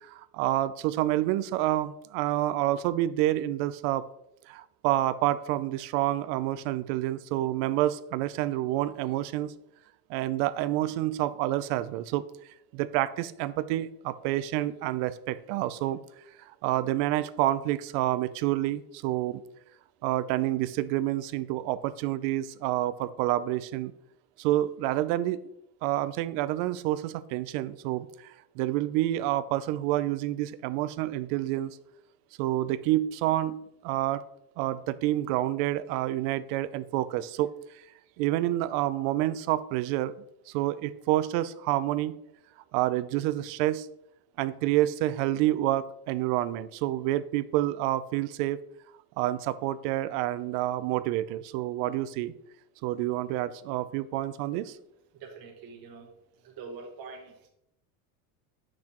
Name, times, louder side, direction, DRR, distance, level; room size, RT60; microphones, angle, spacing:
voice 1, 0.0-4.1 4.5-9.5 10.1-12.2 12.7-16.0 16.6-19.4 20.0-23.9 24.4-25.4 25.8-31.8 32.4-33.6 33.8-34.2 34.6-37.5 38.2-40.1 40.5-42.1 42.7-43.9 44.4-48.6 49.2-52.3 52.8-54.8, right 14 dB, 70° right, 15 dB, 0.6 m, -28 dB
voice 2, 55.2-56.1 56.4-57.5, right 4 dB, 45° right, 0 dB, 1.5 m, -44 dB
6.6 x 6.1 x 3.0 m, 0.77 s
supercardioid pair, 130°, 49 cm